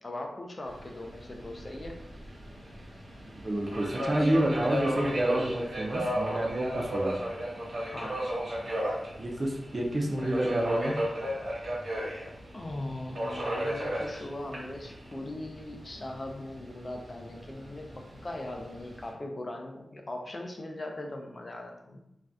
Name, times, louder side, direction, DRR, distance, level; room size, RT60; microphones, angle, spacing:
voice 1, 0.0-2.0 7.9-8.2 12.5-22.0, left 1 dB, 35° left, 2 dB, 0.4 m, -39 dB
Subway metro underground, 0.7-19.1, equal, 65° right, 1.0 m, -35 dB
voice 2, 3.4-7.1 9.2-10.9, right 1 dB, 35° right, 0 dB, 0.4 m, -29 dB
2.5 x 2.3 x 3.3 m, 0.81 s
wide cardioid pair, 115°, 0 cm